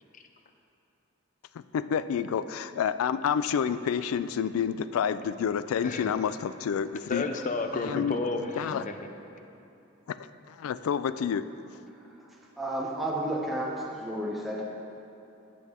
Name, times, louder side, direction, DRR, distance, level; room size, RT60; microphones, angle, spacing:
voice 1, 1.5-7.2 7.9-8.2 8.6-8.8 10.1-10.2 10.5-11.4, left 7 dB, 85° left, 13 dB, 0.3 m, -29 dB
voice 2, 5.8-6.2 7.1-9.1, left 3 dB, 40° left, 6 dB, 0.6 m, -32 dB
voice 3, 11.9-14.7, right 1 dB, ahead, -3 dB, 0.8 m, -33 dB
14.0 x 6.3 x 3.6 m, 2.8 s
head